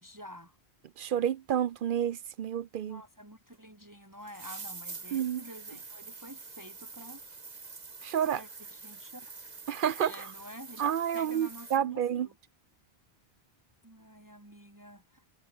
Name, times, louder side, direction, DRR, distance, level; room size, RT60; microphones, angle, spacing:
voice 1, 0.0-0.6 2.9-7.2 7.5-7.8 8.4-9.3 10.0-10.9 11.1-12.4 13.8-15.2, equal, 20° right, 2.3 m, -49 dB
voice 2, 1.0-3.0 5.1-5.4 8.0-8.4 9.7-10.3 10.8-12.3, right 9 dB, 60° right, 0.7 m, -30 dB
sound 1, 3.5-3.6 4.2-11.8, right 4 dB, 40° right, 1.6 m, -46 dB
omnidirectional pair, 1.0 m